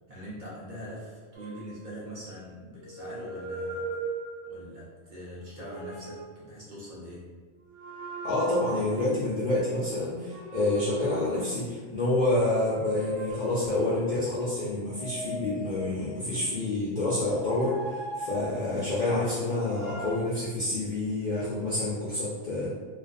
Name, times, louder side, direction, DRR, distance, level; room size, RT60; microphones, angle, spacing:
voice 1, 0.1-3.9 4.5-7.3 18.2-18.4, equal, 50° right, -7 dB, 0.7 m, -42 dB
sound 1, 1.3-2.3 2.8-4.8 5.4-6.4 7.7-9.1 10.3-12.0 12.5-14.2 14.8-16.4 17.2-19.1 19.6-20.2, right 2 dB, 85° right, 1.0 m, -39 dB
voice 2, 8.2-22.7, left 2 dB, 60° left, -8 dB, 0.5 m, -28 dB
2.5 x 2.2 x 2.5 m, 1.4 s
omnidirectional pair, 1.2 m